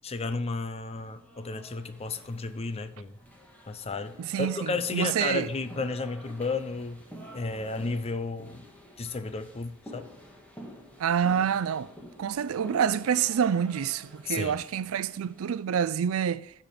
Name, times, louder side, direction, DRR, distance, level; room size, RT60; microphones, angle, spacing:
voice 1, 0.0-3.1 3.7-7.0 7.3-8.6 9.0-10.1 14.3-14.6, left 3 dB, 30° left, 0.5 m, -33 dB
sound 1, 0.9-15.6, equal, 5° left, 1.6 m, -49 dB
voice 2, 4.2-5.5 11.0-11.9 12.2-16.5, right 8 dB, 75° right, 0.4 m, -27 dB
8.9 x 5.2 x 5.8 m
head